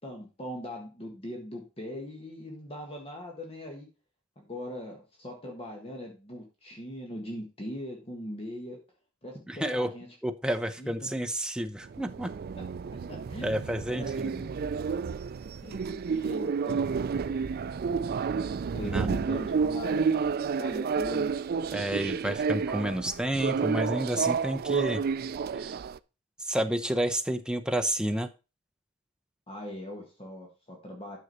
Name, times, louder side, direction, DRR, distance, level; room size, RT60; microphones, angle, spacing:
voice 1, 0.0-3.9 4.4-8.8 9.2-10.1 10.8-11.1 12.6-12.7 13.1-13.5 13.9-14.2 15.6-17.7 18.7-20.1 20.6-21.4 29.5-31.2, left 1 dB, 30° left, 1 dB, 1.6 m, -40 dB
voice 2, 9.5-9.9 10.2-12.3 13.4-14.5 18.8-19.1 21.7-25.0 25.6-25.7 26.4-28.3, right 1 dB, 5° right, 7 dB, 0.7 m, -30 dB
sound 1, 11.8-26.0, right 5 dB, 50° right, 0.4 m, -30 dB
9.5 x 6.5 x 4.1 m, 0.31 s
head